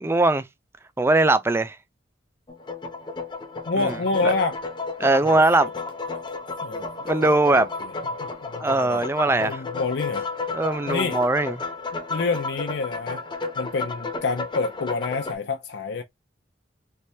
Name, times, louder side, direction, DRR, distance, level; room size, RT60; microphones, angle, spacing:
voice 1, 0.0-0.4 1.0-1.8 3.8-3.9 4.2-4.3 5.0-5.7 7.0-7.7 8.6-9.6 10.5-11.6, right 2 dB, 15° right, 0.3 m, -20 dB
sound 1, 2.5-15.3, left 4 dB, 25° left, 0.7 m, -32 dB
voice 2, 3.7-4.6 5.2-5.4 6.6-7.1 7.5-7.7 8.2-9.0 9.4-10.3 10.9-11.2 11.9-13.2 13.6-16.0, left 3 dB, 70° left, 0.5 m, -27 dB
3.3 x 3.2 x 2.7 m
head